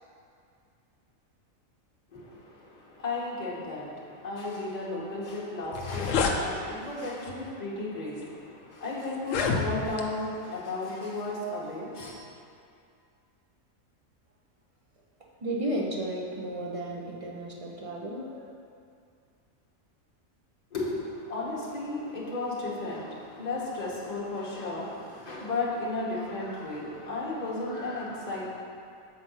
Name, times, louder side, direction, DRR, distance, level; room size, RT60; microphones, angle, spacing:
voice 1, 2.1-12.1 20.7-28.5, left 2 dB, 30° left, -6 dB, 1.3 m, -34 dB
sound 1, 5.3-5.4 5.6-6.4 7.3-7.5 8.2-8.3 9.1-10.1, left 5 dB, 75° left, 1.0 m, -28 dB
voice 2, 15.4-18.5, right 1 dB, 30° right, -2 dB, 0.7 m, -33 dB
6.9 x 4.3 x 5.6 m, 2.4 s
omnidirectional pair, 1.4 m